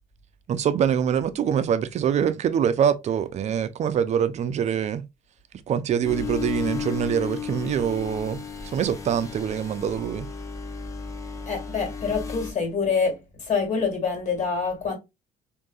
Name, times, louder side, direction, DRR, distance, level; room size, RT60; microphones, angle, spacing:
voice 1, 0.5-5.1 5.7-8.4 8.7-10.3, right 8 dB, 45° right, 0.4 m, -24 dB
sound 1, 6.0-12.5, left 6 dB, 20° left, 0.6 m, -34 dB
voice 2, 11.5-15.0, left 5 dB, 45° left, 1.8 m, -26 dB
3.3 x 2.6 x 2.3 m
cardioid pair, 110°, 17 cm